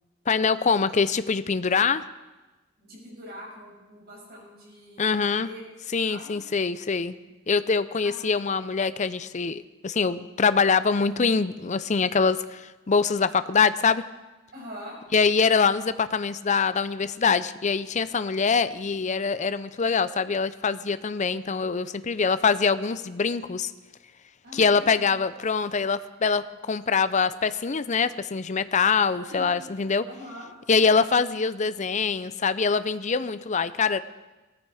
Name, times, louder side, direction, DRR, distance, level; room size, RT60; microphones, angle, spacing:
voice 1, 0.3-2.0 5.0-5.5 5.9-7.2 7.5-14.0 15.1-23.7 24.5-30.1 30.7-34.0, left 5 dB, 35° left, 14 dB, 0.5 m, -24 dB
voice 2, 2.8-5.6 6.1-6.4 8.0-8.3 14.5-15.0 24.4-25.2 29.3-29.6 30.0-30.5, equal, 45° right, -3 dB, 6.7 m, -43 dB
17.5 x 13.5 x 4.9 m, 1.1 s
head